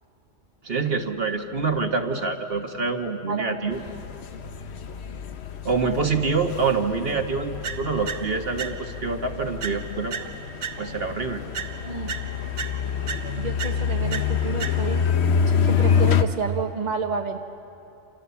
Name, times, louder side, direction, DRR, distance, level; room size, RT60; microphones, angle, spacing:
voice 1, 0.6-3.8 5.6-7.5 7.8-10.1 10.8-11.4, right 4 dB, 50° right, 4 dB, 1.7 m, -26 dB
sound 1, 3.7-16.2, left 7 dB, 60° left, 1.2 m, -27 dB
sound 2, 7.6-9.1 9.6-11.2 11.5-15.1, right 6 dB, 80° right, 1.4 m, -36 dB
voice 2, 11.8-12.2 13.4-15.0 15.3-17.4, right 4 dB, 35° right, 3 dB, 1.3 m, -30 dB
28.0 x 27.5 x 7.1 m, 2.8 s
omnidirectional pair, 1.3 m